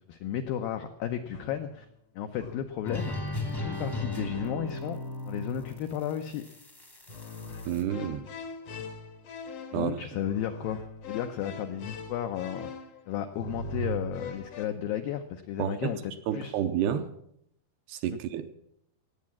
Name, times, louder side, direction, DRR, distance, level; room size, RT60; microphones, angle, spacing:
voice 1, 0.1-1.9 2.2-3.2 3.6-5.0 5.3-6.5 9.7-10.8 11.1-12.7 13.1-16.6, left 10 dB, 85° left, 2.0 m, -33 dB
sound 1, 1.3-1.8 2.3-2.9 3.9-4.9 5.5-6.1 7.1-14.7, left 1 dB, 65° left, 1.5 m, -41 dB
sound 2, 2.8-7.8, left 2 dB, 20° left, 0.7 m, -37 dB
voice 2, 7.7-8.3 9.7-9.9 15.6-15.9 16.3-17.1 17.9-18.5, right 10 dB, 75° right, 2.6 m, -30 dB
18.0 x 8.5 x 7.3 m
omnidirectional pair, 5.1 m